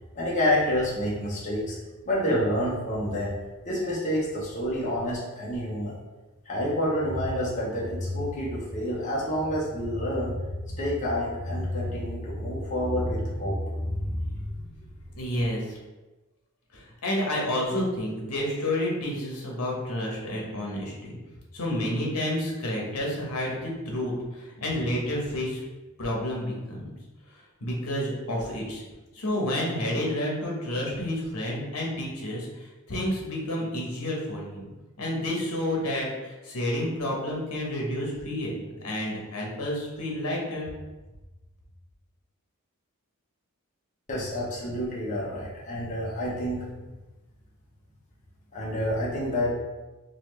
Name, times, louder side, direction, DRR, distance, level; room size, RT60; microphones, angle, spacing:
voice 1, 0.1-1.8 2.1-3.4 3.6-5.9 6.5-10.3 10.7-14.6 44.1-46.7 48.5-49.5, equal, 35° left, -6 dB, 0.9 m, -28 dB
voice 2, 15.1-15.8 16.7-21.2 21.5-25.6 26.0-26.9 27.6-28.8 29.1-34.7 35.0-40.7, left 1 dB, 75° left, -2 dB, 1.1 m, -30 dB
4.0 x 2.6 x 3.1 m, 1.1 s
head